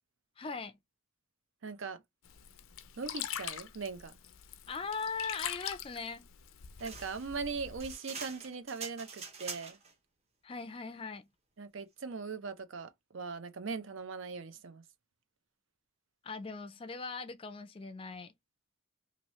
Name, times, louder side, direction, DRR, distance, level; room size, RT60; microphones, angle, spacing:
voice 1, 0.4-0.8 4.7-6.2 10.4-11.3 16.2-18.3, left 4 dB, 25° left, 0.4 m, -40 dB
voice 2, 1.6-2.0 3.0-4.2 6.8-9.8 11.6-14.8, right 4 dB, 75° right, 0.6 m, -40 dB
Sink (filling or washing), 2.2-7.9, left 10 dB, 85° left, 0.5 m, -43 dB
sound 1, 6.8-9.9, right 5 dB, 30° right, 0.8 m, -45 dB
2.9 x 2.7 x 2.9 m
head